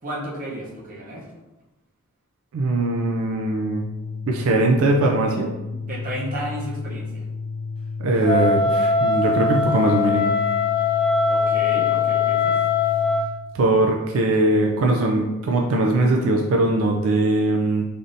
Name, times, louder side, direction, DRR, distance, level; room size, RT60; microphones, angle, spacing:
voice 1, 0.0-1.3 5.8-7.2 11.3-12.6, right 1 dB, 40° right, -4 dB, 0.7 m, -33 dB
voice 2, 2.5-3.8 4.3-5.5 8.0-10.3 13.5-17.9, right 2 dB, 75° right, 1 dB, 0.3 m, -20 dB
Organ, 3.1-13.4, left 4 dB, 65° left, 0.6 m, -32 dB
Wind instrument woodwind instrument, 8.2-13.3, left 5 dB, 25° left, 0.3 m, -21 dB
3.4 x 2.6 x 2.6 m, 1.0 s
head